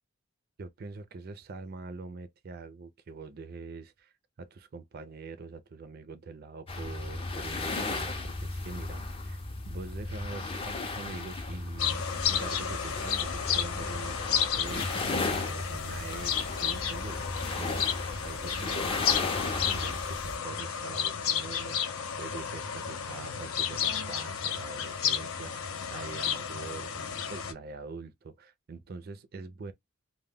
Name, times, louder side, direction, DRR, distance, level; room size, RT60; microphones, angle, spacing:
voice 1, 0.6-4.1 4.4-9.4 9.7-29.7, right 4 dB, 45° right, 0.4 m, -44 dB
sound 1, 6.7-20.4, left 3 dB, 25° left, 0.4 m, -35 dB
sound 2, 11.8-27.5, left 8 dB, 75° left, 0.5 m, -32 dB
2.2 x 2.1 x 3.4 m
head